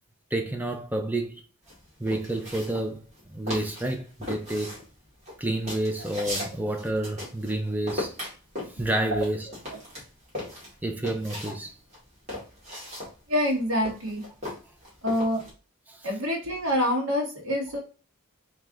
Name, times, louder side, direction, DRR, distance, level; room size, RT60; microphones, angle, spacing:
voice 1, 0.3-1.4 2.0-4.8 5.4-8.1 8.7-9.5 10.8-11.7 15.9-16.1, right 1 dB, 10° right, 0.5 m, -29 dB
sound 1, 1.7-3.2 3.5-3.9 4.2-7.6 7.9-11.6 11.9-15.5, left 1 dB, 30° right, 1.9 m, -37 dB
voice 2, 13.3-14.2 15.0-15.4 16.0-17.8, left 1 dB, 70° right, 1.6 m, -26 dB
3.6 x 3.2 x 3.7 m
head